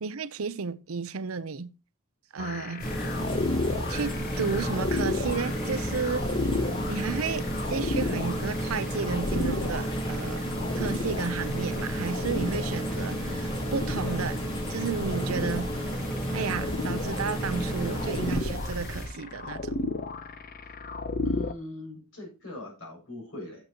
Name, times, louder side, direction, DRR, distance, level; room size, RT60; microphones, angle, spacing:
voice 1, 0.0-1.7 2.3-2.8 3.9-6.2 6.9-14.4 14.7-15.7 16.3-19.7, right 5 dB, 75° right, 0.7 m, -32 dB
sound 1, 2.4-21.5, left 2 dB, 40° left, 0.8 m, -34 dB
sound 2, 2.8-19.1, equal, 85° left, 5.6 m, -36 dB
sound 3, 2.8-18.4, right 1 dB, 25° left, 1.3 m, -33 dB
voice 2, 21.2-23.6, left 1 dB, 70° left, 7.3 m, -41 dB
15.0 x 8.1 x 3.0 m
head